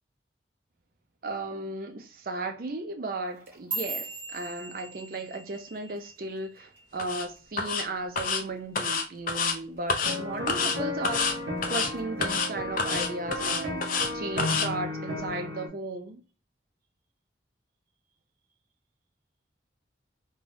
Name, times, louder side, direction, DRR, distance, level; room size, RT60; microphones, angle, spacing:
voice 1, 1.2-11.3 11.7-13.8 14.1-16.2, right 2 dB, 50° right, 0.5 m, -35 dB
sound 1, 3.3-7.7 8.0-8.4 8.8-9.2 9.6-9.8 10.4-10.8 11.2-12.0 12.4-12.8 13.6-13.7, right 3 dB, 15° right, 1.0 m, -40 dB
sound 2, 7.0-7.2 7.6-7.8 8.2-8.4 8.8-9.6 9.9-10.2 10.5-10.8 11.0-11.3 11.6-11.9 12.2-12.5 12.8-14.1 14.4-14.7, left 4 dB, 45° left, 0.4 m, -28 dB
sound 3, 10.0-15.7, left 1 dB, 80° right, 0.8 m, -34 dB
3.3 x 2.2 x 2.6 m
head